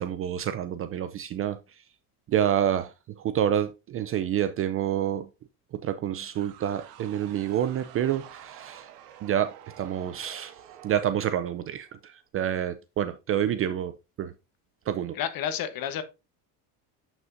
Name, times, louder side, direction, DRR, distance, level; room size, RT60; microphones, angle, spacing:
voice 1, 0.0-1.6 2.3-5.3 5.8-8.9 9.2-10.5 10.8-14.3 14.9-15.2, right 10 dB, 30° right, 0.4 m, -28 dB
sound 1, 6.3-12.1, right 10 dB, 85° right, 1.2 m, -49 dB
voice 2, 15.1-16.0, left 9 dB, 50° left, 1.2 m, -30 dB
7.6 x 5.9 x 2.6 m
supercardioid pair, 125°, 46 cm